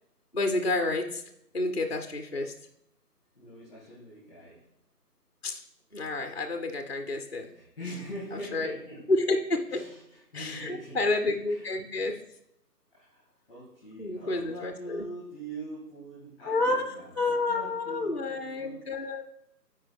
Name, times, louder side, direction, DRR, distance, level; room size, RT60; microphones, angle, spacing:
voice 1, 0.3-1.2 1.5-2.6 5.4-5.6 5.9-7.5 8.3-8.7 9.1-9.8 10.3-12.2 14.0-15.0 16.5-16.9 17.2-19.2, left 2 dB, 40° left, 5 dB, 0.5 m, -29 dB
voice 2, 3.3-4.6 7.5-9.2 9.7-11.0 11.5-11.7 12.9-19.2, right 1 dB, ahead, -10 dB, 1.4 m, -43 dB
10.5 x 4.7 x 3.4 m, 0.77 s
figure-of-eight pair, 170°, 49 cm